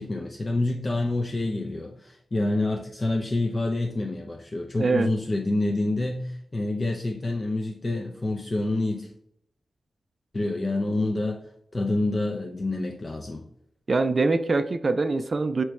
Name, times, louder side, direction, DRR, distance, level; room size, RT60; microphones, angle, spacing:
voice 1, 0.0-9.1 10.3-11.4 11.7-13.4, left 2 dB, 40° left, 2 dB, 0.5 m, -27 dB
voice 2, 4.8-5.1 13.9-15.6, right 3 dB, 50° right, 10 dB, 0.4 m, -23 dB
3.3 x 3.0 x 4.7 m, 0.72 s
cardioid pair, 55°, 0 cm